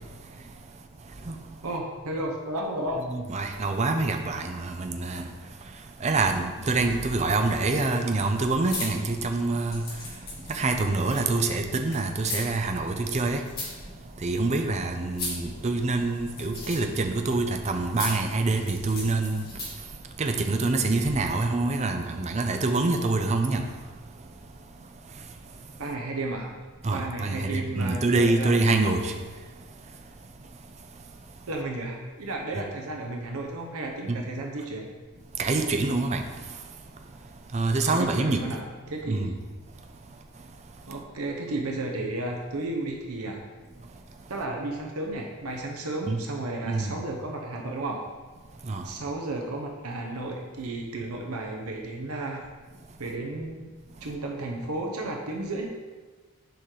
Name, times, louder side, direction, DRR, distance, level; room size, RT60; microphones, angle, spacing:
voice 1, 1.6-3.1 25.8-26.5 26.9-28.5 31.5-34.9 37.9-39.4 40.9-43.4 44.3-48.0 48.8-52.4 53.0-53.7 54.0-55.7, right 2 dB, 75° right, 1 dB, 0.8 m, -33 dB
voice 2, 3.1-5.2 6.0-9.8 10.5-13.4 14.2-19.4 20.2-23.6 26.8-29.1 34.1-34.2 35.4-36.2 37.5-38.4 39.1-39.3 46.1-46.2 46.7-46.9 48.7-48.8, right 3 dB, 30° right, 5 dB, 0.5 m, -26 dB
sound 1, 8.3-19.9, left 2 dB, 45° left, 1.9 m, -39 dB
6.9 x 4.8 x 3.8 m, 1.3 s
head